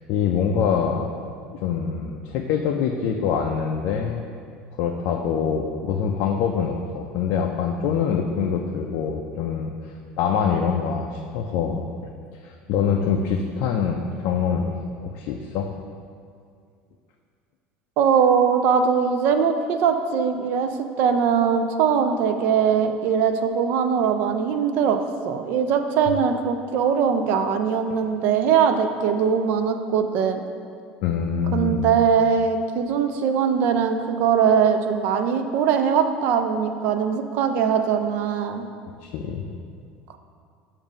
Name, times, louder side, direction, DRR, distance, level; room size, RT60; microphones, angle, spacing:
voice 1, 0.1-4.2 4.8-11.8 12.4-14.7 15.0-15.7 31.0-31.8 39.0-39.5, left 6 dB, 60° left, 1 dB, 0.4 m, -25 dB
voice 2, 18.0-20.7 21.0-30.4 31.5-38.6, right 7 dB, 55° right, 7 dB, 0.4 m, -21 dB
7.1 x 2.6 x 5.1 m, 2.3 s
cardioid pair, 160°, 4 cm